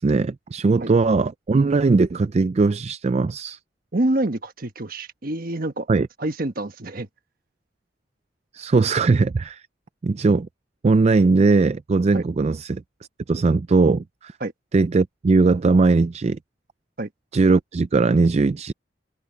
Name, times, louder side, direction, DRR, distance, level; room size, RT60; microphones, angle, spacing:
voice 1, 0.0-3.6 5.9-6.1 8.5-9.6 10.0-10.5 10.8-12.8 13.3-14.3 14.7-16.4 17.3-18.7, right 3 dB, 35° right, 0.4 m, -19 dB
voice 2, 3.9-5.9 6.2-7.1 12.1-12.2 14.4-14.5 17.0-17.1, right 1 dB, 55° right, 1.3 m, -26 dB
head